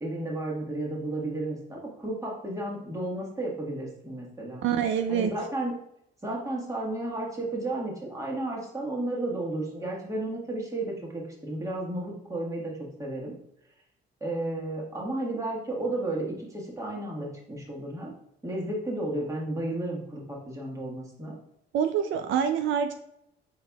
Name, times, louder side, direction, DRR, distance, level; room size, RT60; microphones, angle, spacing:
voice 1, 0.0-4.6 5.1-5.7 6.2-13.3 14.2-18.1 18.4-21.4, right 1 dB, 15° right, -3 dB, 1.4 m, -33 dB
voice 2, 4.6-5.3 21.7-22.9, right 8 dB, 75° right, 7 dB, 0.4 m, -26 dB
5.5 x 3.9 x 2.3 m, 0.77 s
cardioid pair, 90°, 20 cm